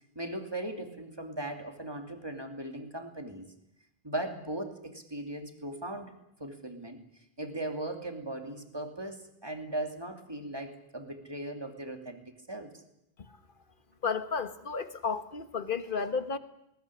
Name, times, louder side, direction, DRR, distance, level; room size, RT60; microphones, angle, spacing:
voice 1, 0.1-3.5 4.0-6.1 6.4-7.0 7.4-12.8, right 1 dB, 25° right, 2.9 m, -38 dB
voice 2, 14.0-16.4, left 5 dB, 55° left, 1.6 m, -32 dB
20.0 x 19.5 x 9.9 m
omnidirectional pair, 1.1 m